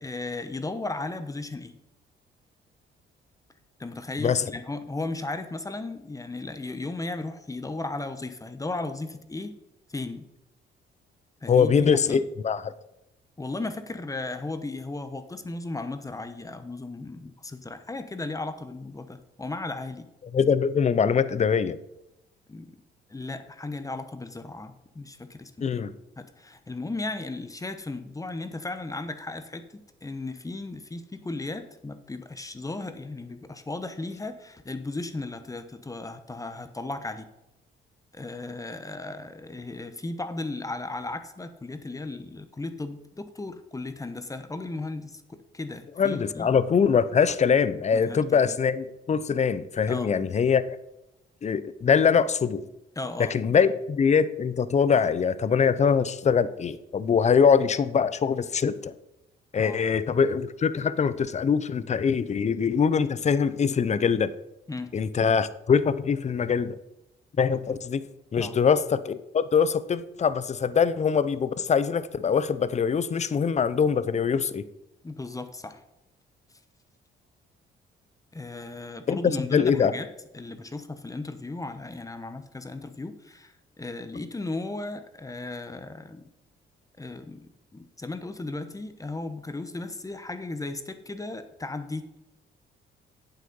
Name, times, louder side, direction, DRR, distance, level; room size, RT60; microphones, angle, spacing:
voice 1, 0.0-1.7 3.8-9.5 9.9-10.3 11.4-12.2 13.4-20.1 22.5-22.7 23.1-25.9 26.2-37.3 38.1-46.5 47.9-48.6 49.9-50.1 53.0-53.6 59.6-59.8 64.7-64.9 68.4-68.6 75.0-75.8 78.3-80.1 80.3-86.2 87.0-87.4 87.7-92.0, left 2 dB, 15° left, 10 dB, 1.0 m, -35 dB
voice 2, 11.5-12.7 20.3-21.8 25.6-25.9 46.0-50.8 51.4-52.6 53.2-58.9 59.5-64.3 64.9-66.8 67.4-68.0 68.3-74.7 79.1-79.2 79.5-79.9, left 6 dB, 35° left, 15 dB, 0.6 m, -23 dB
8.2 x 7.9 x 5.4 m, 0.90 s
cardioid pair, 90°, 20 cm